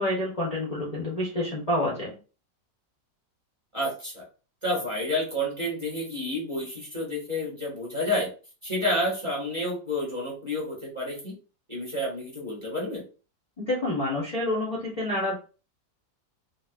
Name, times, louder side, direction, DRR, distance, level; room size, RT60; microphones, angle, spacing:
voice 1, 0.0-2.1 13.6-15.4, left 1 dB, 35° left, -4 dB, 0.7 m, -28 dB
voice 2, 3.7-4.2 4.6-8.3 8.6-11.3 11.7-13.0, left 1 dB, 20° right, -5 dB, 1.2 m, -30 dB
3.9 x 2.6 x 2.4 m, 0.35 s
omnidirectional pair, 1.9 m